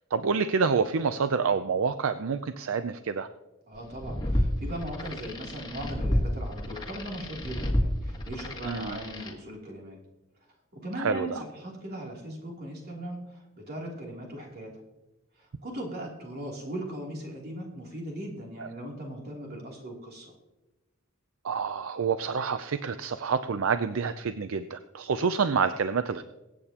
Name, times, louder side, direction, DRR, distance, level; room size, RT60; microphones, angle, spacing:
voice 1, 0.1-3.3 8.7-9.0 11.0-11.3 21.4-26.2, right 5 dB, 75° right, 11 dB, 0.5 m, -27 dB
voice 2, 3.7-10.0 10.4-14.8 15.4-20.3, right 1 dB, 50° right, -1 dB, 3.0 m, -39 dB
sound 1, 3.8-9.3, equal, 20° left, 1.6 m, -30 dB
23.0 x 8.7 x 2.9 m, 1.0 s
head